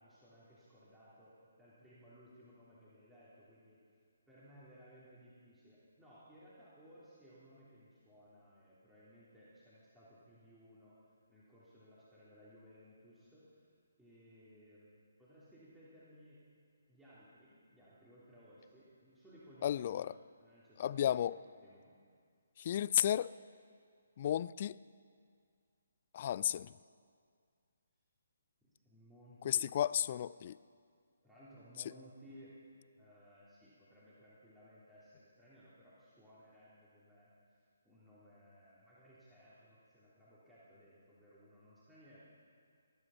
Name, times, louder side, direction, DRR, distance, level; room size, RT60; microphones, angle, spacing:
voice 1, 0.0-1.3 1.6-3.8 4.3-11.0 11.3-13.6 14.0-16.4 16.9-22.0 28.6-29.7 30.0-30.2 31.2-32.6 33.0-42.2, equal, 5° right, 3.1 m, -60 dB
voice 2, 19.6-20.1 20.8-21.4 22.6-23.3 24.2-24.8 26.1-26.7 29.4-30.6, left 10 dB, 40° left, 0.3 m, -33 dB
18.5 x 11.5 x 5.8 m
figure-of-eight pair, 140°, 0 cm